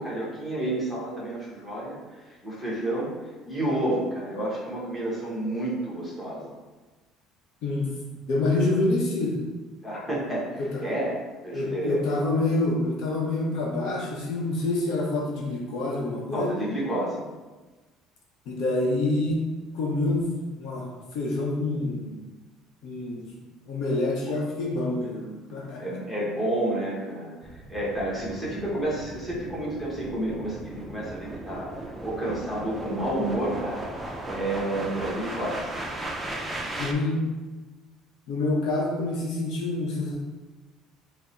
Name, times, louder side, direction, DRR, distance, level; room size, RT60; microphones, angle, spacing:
voice 1, 0.0-3.1 3.4-6.5 9.8-12.0 16.3-17.2 25.8-33.8 34.2-35.7, right 1 dB, 5° left, -7 dB, 1.1 m, -30 dB
voice 2, 8.3-9.4 10.6-10.7 11.5-16.5 18.5-19.4 19.7-20.3 20.6-20.9 21.1-22.1 22.8-23.3 23.7-26.0 36.8-37.2 38.3-40.2, left 2 dB, 65° left, -2 dB, 0.7 m, -27 dB
sound 1, 27.4-36.9, right 1 dB, 10° right, 0.4 m, -37 dB
3.5 x 2.0 x 4.1 m, 1.2 s
cardioid pair, 135°, 0 cm